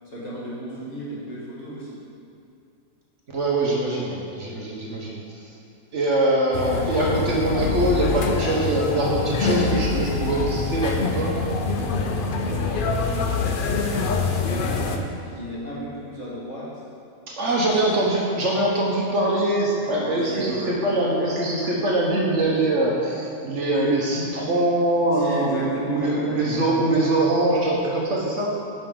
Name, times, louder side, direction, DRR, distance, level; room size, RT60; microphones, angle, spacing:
voice 1, 0.1-2.0 12.4-13.1 13.6-16.7 17.4-18.1 19.9-20.7 25.1-26.8, equal, 50° left, -7 dB, 2.0 m, -35 dB
voice 2, 3.3-5.4 5.9-11.4 17.3-28.6, right 1 dB, 55° right, -3 dB, 1.2 m, -23 dB
sound 1, 6.5-15.0, left 4 dB, 65° left, 0.5 m, -25 dB
10.5 x 5.2 x 3.8 m, 2.6 s
omnidirectional pair, 1.6 m